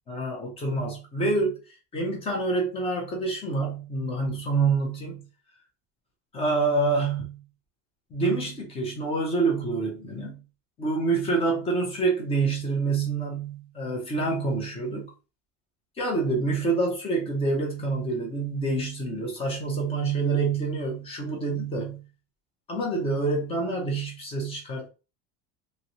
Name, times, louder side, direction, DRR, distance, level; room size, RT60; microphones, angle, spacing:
voice 1, 0.1-1.6 1.9-5.2 6.3-7.4 8.1-10.4 10.8-15.1 16.0-22.0 22.7-24.9, right 3 dB, 15° left, 0.4 m, -27 dB
3.0 x 2.6 x 2.6 m
cardioid pair, 175°, 45 cm